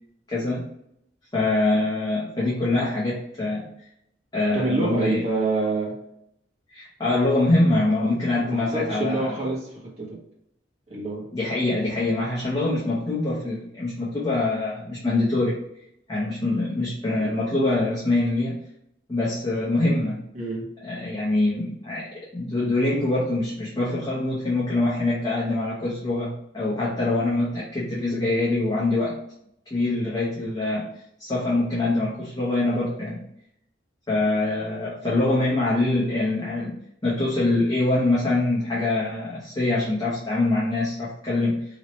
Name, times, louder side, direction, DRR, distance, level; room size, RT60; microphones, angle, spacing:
voice 1, 0.3-0.6 1.3-3.7 4.3-5.2 6.7-9.4 11.3-15.6 16.1-18.6 19.1-20.2 20.8-29.2 29.7-30.9 31.2-33.2 34.1-36.8 37.0-41.7, left 2 dB, 20° left, -8 dB, 0.8 m, -24 dB
voice 2, 4.5-5.9 8.5-10.2 10.9-11.2 20.3-20.7, right 3 dB, 35° right, -5 dB, 1.3 m, -27 dB
3.0 x 2.8 x 3.0 m, 0.76 s
head